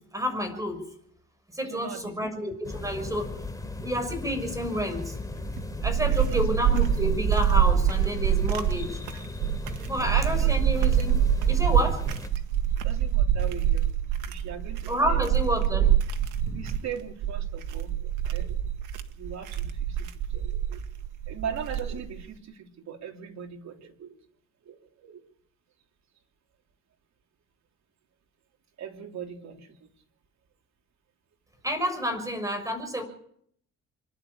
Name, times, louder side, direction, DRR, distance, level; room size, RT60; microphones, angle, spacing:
voice 1, 0.1-0.8 1.5-3.4 3.8-5.1 5.8-9.0 9.9-11.2 11.5-12.0 14.9-16.0 16.4-16.6 31.6-33.0, equal, 10° right, 7 dB, 6.4 m, -29 dB
voice 2, 1.6-2.4 5.9-6.5 8.4-8.5 10.0-10.7 12.8-13.9 14.3-15.3 16.5-18.6 19.2-20.9 21.3-24.2 24.6-25.2 28.8-29.9, right 7 dB, 65° right, 3 dB, 3.3 m, -40 dB
sound 1, 2.6-12.3, left 2 dB, 10° left, 3.2 m, -37 dB
sound 2, 5.4-22.2, right 9 dB, 90° right, 1.7 m, -25 dB
26.0 x 12.0 x 8.7 m, 0.68 s
cardioid pair, 90°, 30 cm